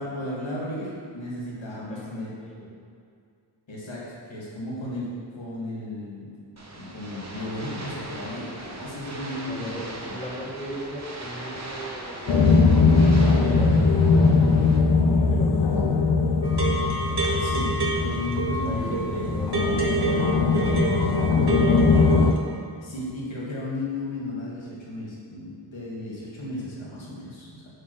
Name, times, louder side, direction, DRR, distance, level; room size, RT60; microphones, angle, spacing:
voice 1, 0.0-2.3 3.7-5.1 5.4-6.3 6.7-10.2 17.4-19.3 22.8-27.6, left 1 dB, 90° left, -7 dB, 2.1 m, -34 dB
voice 2, 1.6-2.7 9.5-12.5 13.3-15.7 18.6-19.6 19.8-21.4, equal, 15° left, -4 dB, 1.6 m, -39 dB
sound 1, 6.6-14.8, right 1 dB, 35° right, 1.1 m, -39 dB
sound 2, 12.3-22.3, left 4 dB, 65° left, 0.7 m, -20 dB
sound 3, 16.4-22.4, right 3 dB, 60° right, 1.5 m, -29 dB
7.7 x 4.4 x 6.4 m, 2.4 s
wide cardioid pair, 60°, 45 cm